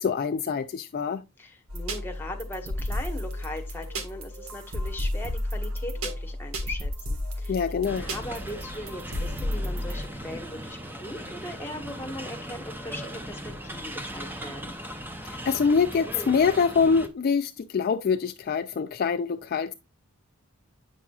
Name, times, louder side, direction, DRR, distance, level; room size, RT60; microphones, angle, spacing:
voice 1, 0.0-1.2 7.5-8.1 15.2-19.7, left 5 dB, 45° left, 0.3 m, -25 dB
voice 2, 1.4-7.5 8.0-14.7, left 1 dB, 10° left, 1.3 m, -39 dB
sound 1, 1.7-10.0, left 1 dB, 75° right, 1.6 m, -32 dB
sound 2, 7.8-17.1, equal, 10° right, 0.7 m, -38 dB
8.3 x 6.0 x 2.3 m
head